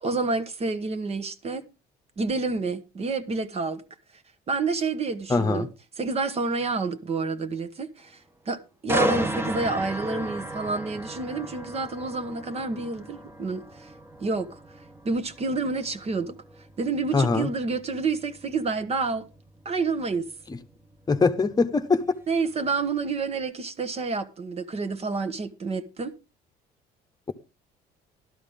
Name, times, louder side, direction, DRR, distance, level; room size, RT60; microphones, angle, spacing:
voice 1, 0.0-1.6 2.2-3.8 4.5-5.7 6.0-8.2 8.4-13.9 14.2-14.6 15.0-16.4 16.8-19.3 19.6-20.3 22.3-26.1, right 4 dB, 35° right, 1.2 m, -29 dB
voice 2, 5.3-5.7 17.1-17.5 21.1-22.0, left 4 dB, 20° left, 1.0 m, -22 dB
sound 1, 8.9-22.7 23.1-23.4, right 1 dB, 15° right, 1.2 m, -35 dB
12.5 x 11.5 x 3.6 m
cardioid pair, 110°, 17 cm